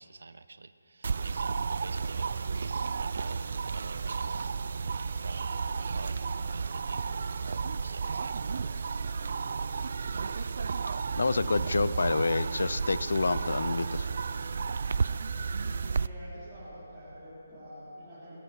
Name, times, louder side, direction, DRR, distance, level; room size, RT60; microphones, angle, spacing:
voice 1, 0.0-4.5 5.2-8.4, right 3 dB, 75° right, 13 dB, 0.7 m, -47 dB
sound 1, 1.0-16.1, right 5 dB, 50° right, 0.3 m, -32 dB
voice 2, 11.1-14.1, left 3 dB, 75° left, 16 dB, 0.5 m, -28 dB
voice 3, 15.7-18.3, equal, 5° right, -19 dB, 3.8 m, -47 dB
20.5 x 11.5 x 6.1 m, 2.9 s
hypercardioid pair, 175°, 0 cm